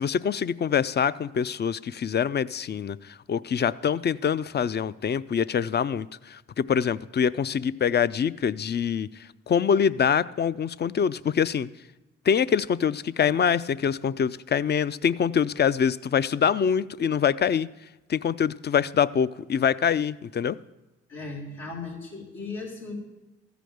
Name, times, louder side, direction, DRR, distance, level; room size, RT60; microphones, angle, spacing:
voice 1, 0.0-11.7 12.3-17.7 18.1-20.6, left 7 dB, 35° left, 17 dB, 0.4 m, -25 dB
voice 2, 21.1-22.9, left 3 dB, 85° left, -4 dB, 2.9 m, -37 dB
14.0 x 5.1 x 7.8 m, 1.1 s
supercardioid pair, 50°, 29 cm